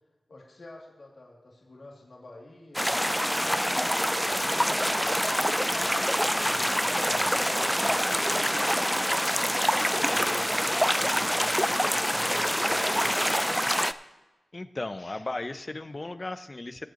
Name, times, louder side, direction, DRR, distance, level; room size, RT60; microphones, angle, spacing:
voice 1, 0.3-3.0 3.3-5.9 6.4-8.5 9.0-13.6, left 2 dB, 70° left, -3 dB, 2.6 m, -48 dB
sound 1, 2.7-13.9, equal, ahead, 0.4 m, -26 dB
voice 2, 14.5-16.9, left 2 dB, 40° left, 11 dB, 0.7 m, -35 dB
21.0 x 8.0 x 3.0 m, 1.1 s
cardioid pair, 45°, 0 cm